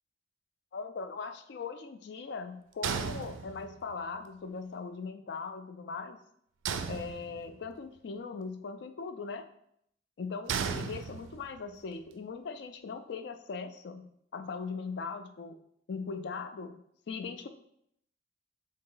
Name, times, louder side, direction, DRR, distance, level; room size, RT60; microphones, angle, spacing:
voice 1, 0.7-6.2 6.9-9.5 10.2-15.6 15.9-17.5, left 4 dB, 55° left, 8 dB, 0.3 m, -40 dB
sound 1, 2.8-3.9 6.6-7.7 10.5-11.6, right 6 dB, 80° right, 0.3 m, -35 dB
4.1 x 2.6 x 3.8 m, 0.72 s
head